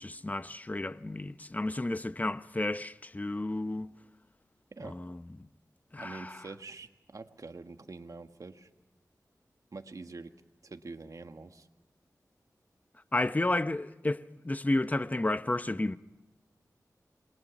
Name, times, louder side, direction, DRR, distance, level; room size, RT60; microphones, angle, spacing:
voice 1, 0.0-3.9 4.8-5.2 5.9-6.4 13.1-16.0, left 2 dB, 25° left, 0.8 m, -32 dB
voice 2, 6.0-8.7 9.7-10.3 10.6-11.7, right 3 dB, 60° right, 1.6 m, -45 dB
27.5 x 22.5 x 6.0 m
wide cardioid pair, 60°, 7 cm